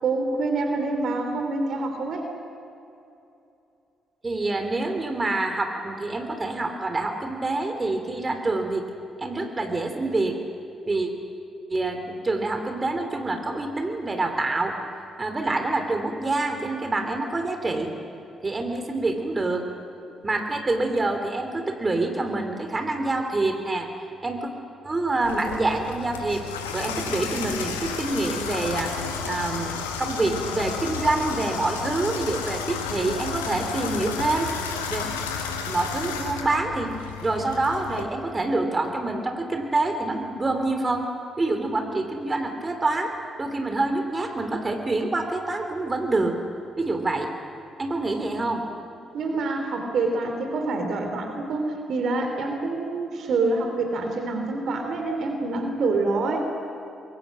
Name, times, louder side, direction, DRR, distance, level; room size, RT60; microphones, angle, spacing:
voice 1, 0.0-2.3 49.1-56.4, right 3 dB, 60° right, 4 dB, 3.1 m, -26 dB
voice 2, 4.2-8.9 9.2-10.4 10.9-11.1 11.7-14.8 15.2-17.9 18.4-19.6 20.2-23.9 24.2-24.5 24.8-26.4 26.7-28.9 29.2-34.5 34.9-35.0 35.7-36.9 37.2-41.1 41.4-43.1 43.4-46.4 46.8-47.3 47.8-48.6, right 2 dB, 30° right, 5 dB, 3.3 m, -26 dB
Water tap faucet / Bathtub (filling or washing), 25.2-38.0, left 6 dB, 85° left, 1.5 m, -32 dB
27.0 x 22.0 x 6.4 m, 2.8 s
hypercardioid pair, 40°, 0 cm